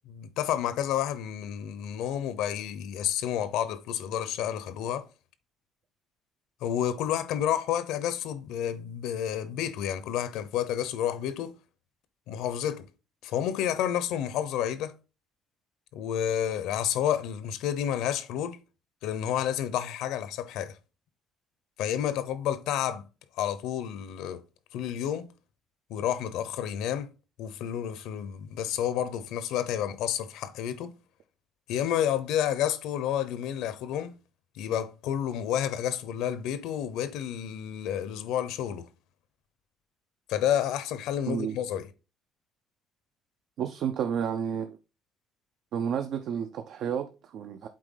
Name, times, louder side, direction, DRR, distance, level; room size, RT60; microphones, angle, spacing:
voice 1, 0.1-5.1 6.6-11.6 12.3-12.9 13.2-14.9 15.9-18.6 19.0-20.8 21.8-23.0 23.4-24.4 24.7-25.3 25.9-27.1 27.4-31.0 31.7-34.2 34.6-38.9 40.3-41.9, left 10 dB, 85° left, 0.8 m, -30 dB
voice 2, 41.3-41.6 43.6-44.8 45.7-47.7, right 8 dB, 60° right, 0.6 m, -31 dB
7.7 x 4.4 x 3.9 m
cardioid pair, 140°, 0 cm